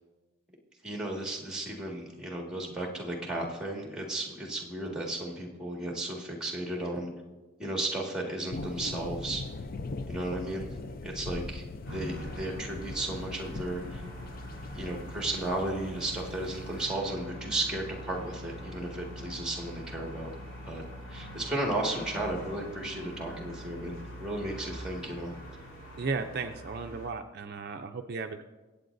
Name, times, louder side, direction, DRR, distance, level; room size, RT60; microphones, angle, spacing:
voice 1, 0.8-7.1 7.6-9.4 10.1-10.7 11.0-14.0 14.7-20.3 20.7-20.8 21.1-23.9 24.2-25.3, right 1 dB, 5° right, -1 dB, 1.8 m, -34 dB
sound 1, 8.5-16.9, left 3 dB, 45° left, 0.5 m, -41 dB
sound 2, 11.8-27.1, equal, 85° left, 3.3 m, -43 dB
voice 2, 26.0-28.4, right 4 dB, 50° right, 6 dB, 0.5 m, -35 dB
23.5 x 8.3 x 2.6 m, 1.2 s
head